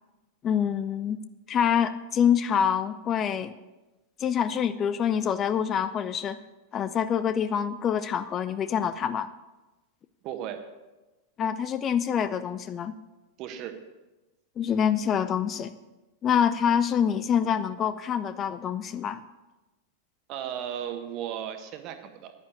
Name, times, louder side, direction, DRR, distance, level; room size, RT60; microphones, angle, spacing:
voice 1, 0.4-1.2 1.5-3.6 4.2-6.4 6.7-9.3 11.4-12.9 14.6-15.7 16.2-19.2, left 8 dB, 30° left, 13 dB, 0.5 m, -26 dB
voice 2, 10.2-10.6 13.4-13.7 20.3-22.3, right 10 dB, 40° right, 7 dB, 1.4 m, -35 dB
10.0 x 9.7 x 7.0 m, 1.1 s
figure-of-eight pair, 90°, 0 cm